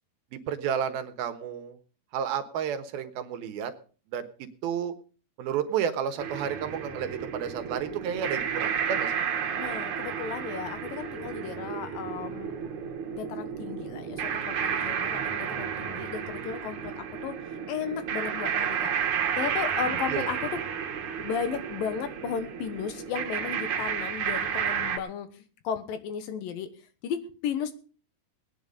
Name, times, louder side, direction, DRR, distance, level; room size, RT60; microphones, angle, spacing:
voice 1, 0.3-1.8 2.1-3.7 4.1-4.9 5.4-9.2 20.1-20.3, right 8 dB, 75° right, 9 dB, 3.1 m, -31 dB
sound 1, 6.2-25.0, right 8 dB, 55° right, 2.7 m, -32 dB
voice 2, 9.6-12.5 13.1-14.3 14.6-17.3 17.7-18.9 19.4-20.6 21.2-26.7 27.0-27.7, left 7 dB, 70° left, 10 dB, 2.8 m, -34 dB
19.0 x 10.0 x 5.3 m, 0.40 s
omnidirectional pair, 4.4 m